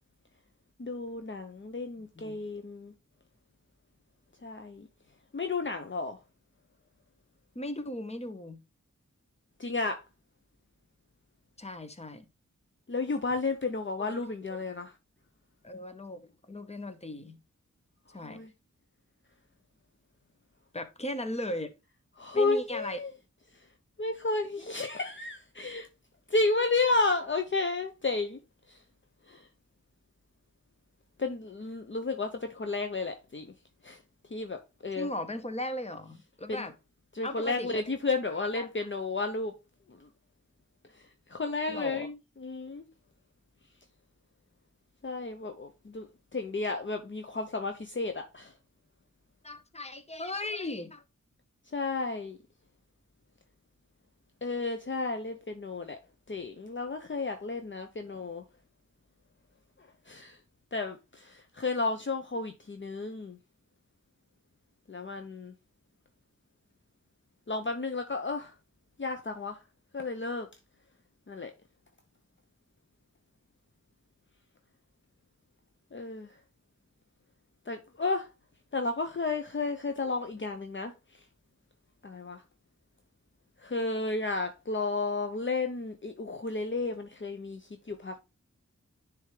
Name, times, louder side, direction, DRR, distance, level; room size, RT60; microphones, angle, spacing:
voice 1, 0.8-2.9 4.4-4.9 5.3-6.2 9.6-10.0 12.9-14.9 18.2-18.5 22.2-23.1 24.0-25.9 26.3-28.4 28.7-28.8 29.3-29.5 31.2-33.5 33.8-34.0 34.3-35.1 36.5-36.7 37.1-39.5 40.0-40.1 40.9-41.0 41.3-42.9 45.0-48.5 51.7-52.4 54.4-56.0 56.3-58.4 60.1-60.4 60.7-63.4 64.9-65.5 67.5-68.5 69.0-69.6 69.9-70.5 71.3-71.5 75.9-76.3 77.7-78.3 78.7-80.9 82.0-82.4 83.6-88.2, left 3 dB, 40° left, 0.7 m, -32 dB
voice 2, 2.0-2.4 7.5-8.6 11.6-12.3 14.0-14.2 15.6-17.4 18.1-18.4 20.7-21.7 22.3-23.0 24.6-24.7 35.0-36.7 37.2-37.8 38.5-38.9 41.7-42.1 49.4-51.0, left 1 dB, 20° left, 1.0 m, -37 dB
10.0 x 3.5 x 3.2 m
wide cardioid pair, 75°, 30 cm